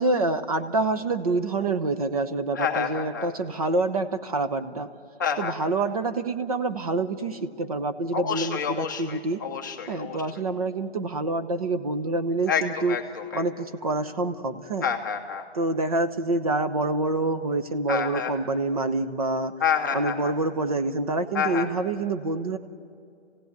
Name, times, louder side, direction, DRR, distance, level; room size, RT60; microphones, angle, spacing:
voice 1, 0.0-4.9 5.4-9.4 9.9-13.0 13.3-14.9 15.5-19.5 19.9-22.6, right 2 dB, 35° right, 9 dB, 0.8 m, -27 dB
voice 2, 2.5-3.3 5.2-5.5 8.1-10.2 12.5-13.4 14.8-15.5 17.9-18.3 19.6-20.3 21.3-21.7, left 7 dB, 15° left, 1 dB, 0.7 m, -28 dB
28.5 x 16.5 x 9.5 m, 2.4 s
hypercardioid pair, 170°, 34 cm